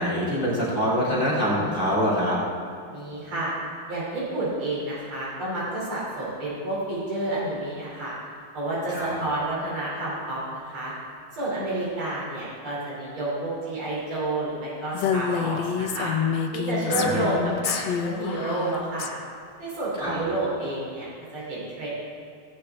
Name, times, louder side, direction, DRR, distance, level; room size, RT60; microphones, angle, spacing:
voice 1, 0.0-2.4 8.9-9.2 16.9-17.3 20.0-20.2, equal, 25° left, -7 dB, 2.6 m, -25 dB
voice 2, 2.9-3.5 3.9-8.1 8.5-10.9 11.3-16.1 16.5-19.1 19.6-21.9, right 2 dB, 85° right, -7 dB, 3.9 m, -30 dB
Female speech woman speaking, 14.9-19.1, left 7 dB, 70° left, 1.3 m, -27 dB
16.5 x 9.8 x 3.5 m, 2.3 s
omnidirectional pair, 2.3 m